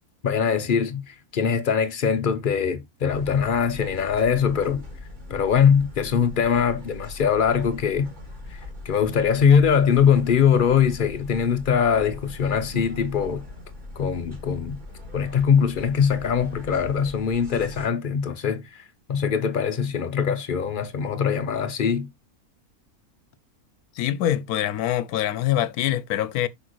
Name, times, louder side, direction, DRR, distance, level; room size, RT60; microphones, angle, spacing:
voice 1, 0.2-4.8 5.3-8.1 8.5-13.4 14.0-14.8 15.1-18.8 19.1-22.1, left 7 dB, 50° left, 0.7 m, -22 dB
sound 1, 3.1-17.9, left 2 dB, 30° right, 2.1 m, -41 dB
voice 2, 24.0-26.5, left 12 dB, 90° left, 1.1 m, -24 dB
6.2 x 5.7 x 3.0 m
omnidirectional pair, 1.6 m